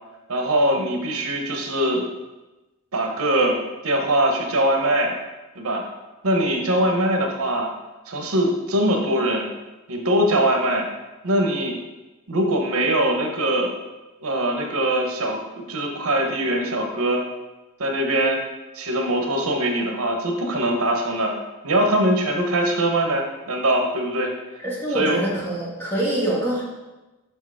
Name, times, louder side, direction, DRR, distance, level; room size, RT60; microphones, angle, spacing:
voice 1, 0.3-2.0 2.9-5.1 5.5-5.9 6.2-7.7 8.1-9.5 9.9-10.9 11.2-11.8 12.3-13.7 14.2-17.2 17.8-18.4 18.7-21.4 21.6-24.3 24.9-25.3, right 1 dB, 80° right, 2 dB, 0.9 m, -22 dB
voice 2, 24.6-26.6, right 1 dB, 10° left, -7 dB, 1.8 m, -25 dB
5.9 x 4.6 x 4.8 m, 1.1 s
head